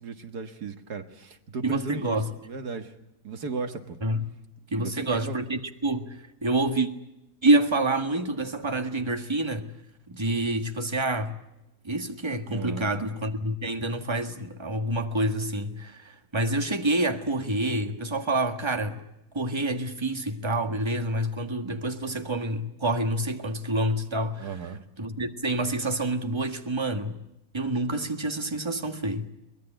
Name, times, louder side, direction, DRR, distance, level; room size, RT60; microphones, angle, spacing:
voice 1, 0.0-2.9 3.2-4.0 4.7-5.4 12.5-12.9 24.4-24.8, right 4 dB, 75° right, 2.2 m, -36 dB
voice 2, 1.6-2.3 4.0-4.2 4.7-6.9 7.4-9.7 10.1-11.4 11.8-19.0 19.3-24.5 25.0-27.2 27.5-29.3, right 1 dB, 15° right, 1.6 m, -27 dB
24.0 x 20.0 x 9.0 m
omnidirectional pair, 1.7 m